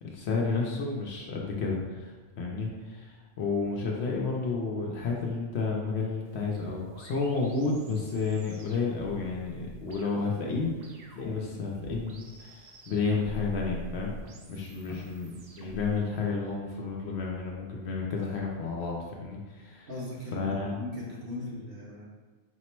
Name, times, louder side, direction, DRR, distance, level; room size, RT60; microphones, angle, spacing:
voice 1, 0.0-2.1 2.4-10.7 11.2-14.2 14.5-19.9 20.3-20.8, left 4 dB, 65° left, -1 dB, 0.8 m, -31 dB
sound 1, 6.3-16.0, right 1 dB, 70° right, 0.4 m, -47 dB
voice 2, 19.9-22.0, left 1 dB, 50° right, -6 dB, 1.2 m, -39 dB
4.4 x 2.0 x 4.3 m, 1.3 s
omnidirectional pair, 1.3 m